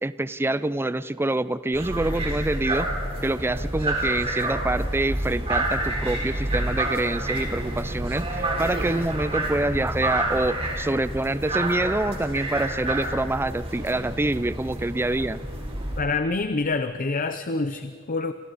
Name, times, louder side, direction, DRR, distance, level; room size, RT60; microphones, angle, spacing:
voice 1, 0.0-2.9 3.2-15.4, right 2 dB, 10° right, 15 dB, 0.4 m, -26 dB
sound 1, 1.7-16.0, right 1 dB, 30° right, 4.0 m, -29 dB
voice 2, 16.0-18.3, left 3 dB, 40° left, 9 dB, 0.7 m, -26 dB
28.5 x 28.0 x 4.2 m, 2.3 s
head